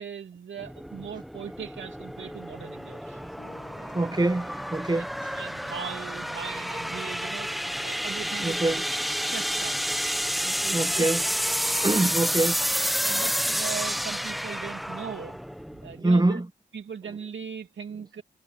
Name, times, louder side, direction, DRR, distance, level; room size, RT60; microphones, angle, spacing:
voice 1, 0.0-3.2 5.0-7.6 7.8-8.8 9.2-9.9 10.4-11.1 11.9-12.1 13.0-15.4 15.8-16.4 16.7-18.2, right 7 dB, 80° right, 2.7 m, -39 dB
sound 1, 0.6-16.0, equal, ahead, 1.0 m, -30 dB
voice 2, 3.1-3.5 3.8-5.4 8.4-8.8 10.7-11.2 11.7-12.6 15.9-16.5, right 2 dB, 20° right, 1.6 m, -25 dB
sound 2, 3.4-7.5, left 6 dB, 75° left, 2.9 m, -57 dB
cardioid pair, 65°, 19 cm